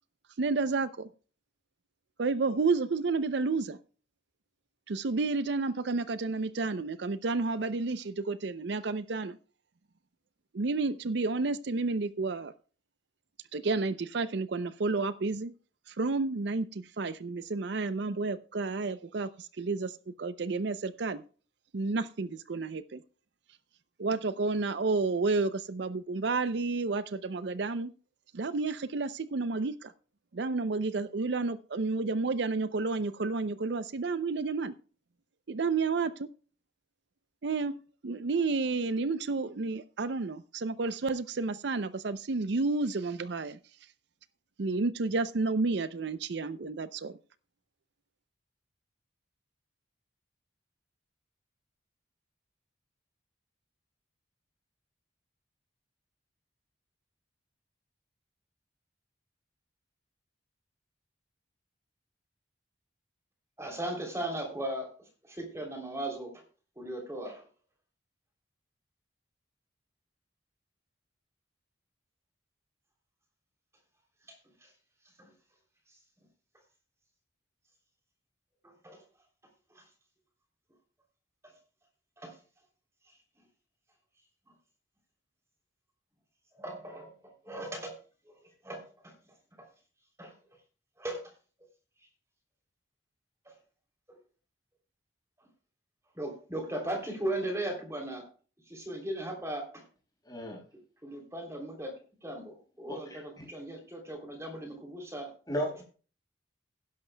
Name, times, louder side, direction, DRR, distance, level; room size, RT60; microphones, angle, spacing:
voice 1, 0.4-1.1 2.2-3.8 4.9-9.4 10.5-12.5 13.5-15.5 15.9-21.2 21.7-23.0 24.0-27.9 28.3-29.9 30.3-34.7 35.5-36.3 37.4-37.8 38.0-43.6 44.6-47.2, right 3 dB, 65° right, 14 dB, 0.5 m, -31 dB
voice 2, 63.6-66.4 66.7-67.5 74.3-74.7 75.0-75.3 75.9-76.0 78.6-79.0 79.7-79.9 81.4-81.5 82.2-82.4 83.0-83.4 86.5-88.0 88.2-89.1 89.6-89.7 90.2-90.3 91.0-91.3 93.4-93.6 94.1-94.2 95.4-95.5 96.1-98.2 98.7-99.8 101.0-101.9 102.2-105.3, right 1 dB, 15° right, 2 dB, 3.1 m, -38 dB
voice 3, 100.2-100.6 102.9-103.4 105.5-105.8, equal, 20° left, -1 dB, 5.6 m, -35 dB
16.5 x 12.0 x 2.2 m, 0.38 s
head